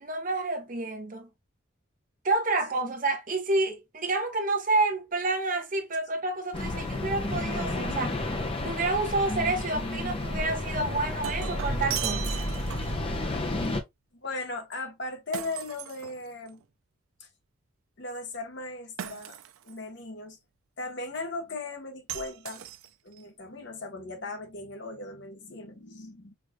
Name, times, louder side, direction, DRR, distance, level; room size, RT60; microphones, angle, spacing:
voice 1, 0.0-1.3 2.2-8.2 8.6-12.4, right 2 dB, 40° right, 0.7 m, -29 dB
sound 1, 6.5-13.8, left 1 dB, 25° left, 0.6 m, -31 dB
Shatter, 10.8-13.1 15.3-16.6 19.0-19.8 22.1-23.2, right 11 dB, 85° right, 0.4 m, -38 dB
voice 2, 14.1-16.6 17.2-17.3 18.0-19.4 19.6-20.4 20.8-22.7 23.0-26.3, left 2 dB, 55° left, 1.0 m, -38 dB
4.6 x 2.5 x 2.2 m
head